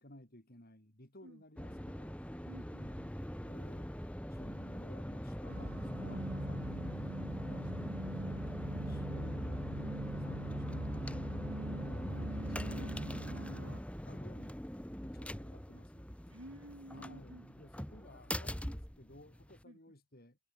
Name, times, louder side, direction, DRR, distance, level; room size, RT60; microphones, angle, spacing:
voice 1, 0.0-2.2 2.8-3.0 3.4-3.9 4.3-7.9 8.2-8.5 8.9-12.1 12.3-16.4 16.9-20.4, left 1 dB, 40° left, 4.6 m, -57 dB
voice 2, 1.2-1.9 8.7-9.1 16.3-17.5 19.6-19.8, right 1 dB, 55° right, 4.2 m, -54 dB
sound 1, 1.6-19.6, equal, 5° left, 2.0 m, -42 dB
sound 2, 5.5-13.8, right 1 dB, 75° right, 2.4 m, -42 dB
head